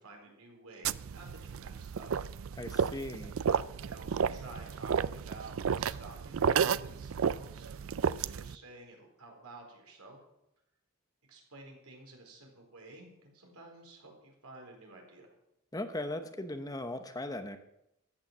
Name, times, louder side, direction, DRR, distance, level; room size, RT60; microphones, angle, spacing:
voice 1, 0.0-2.2 3.7-10.2 11.3-15.4, right 2 dB, 80° right, 2 dB, 4.1 m, -52 dB
sound 1, 0.8-8.5, right 6 dB, 60° right, 0.4 m, -32 dB
voice 2, 2.6-3.3 15.7-17.6, left 1 dB, 15° left, 8 dB, 0.8 m, -38 dB
14.0 x 8.9 x 7.2 m, 0.84 s
head